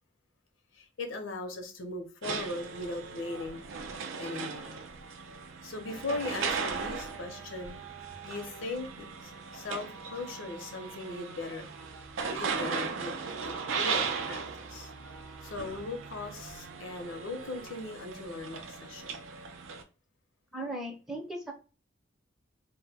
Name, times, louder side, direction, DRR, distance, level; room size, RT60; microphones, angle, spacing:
voice 1, 0.7-3.6 4.2-4.8 5.6-7.8 8.2-11.7 12.3-14.9 15.4-19.2, left 2 dB, 90° left, 0.6 m, -39 dB
sound 1, 2.2-19.8, right 5 dB, 80° right, 0.4 m, -37 dB
voice 2, 20.5-21.5, right 1 dB, ahead, 0.5 m, -37 dB
2.1 x 2.1 x 3.3 m
head